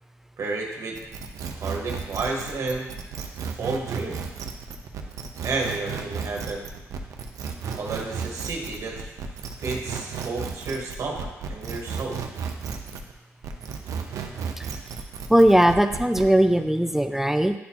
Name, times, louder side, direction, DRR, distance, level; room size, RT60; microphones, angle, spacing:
voice 1, 0.4-1.0 1.6-2.9 3.5-4.2 5.4-6.7 7.8-9.1 9.6-12.2, right 3 dB, 65° right, 0 dB, 1.4 m, -31 dB
sound 1, 0.9-13.1 13.4-16.3, right 6 dB, 80° right, 0.6 m, -34 dB
voice 2, 15.3-17.5, right 1 dB, 5° right, 8 dB, 0.4 m, -19 dB
10.0 x 4.2 x 2.9 m, 1.0 s
cardioid pair, 85°, 6 cm